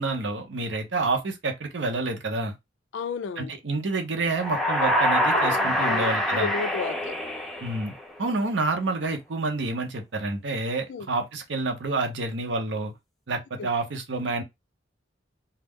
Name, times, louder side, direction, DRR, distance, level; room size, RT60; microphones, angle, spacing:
voice 1, 0.0-2.5 3.4-6.5 7.6-7.9 8.2-12.9 13.3-14.4, right 3 dB, 85° right, 0.7 m, -28 dB
voice 2, 2.9-3.5 5.3-7.1 10.9-11.1 13.6-13.7, left 5 dB, 85° left, 0.4 m, -33 dB
sound 1, 4.3-8.2, equal, ahead, 0.4 m, -25 dB
2.3 x 2.1 x 3.4 m
head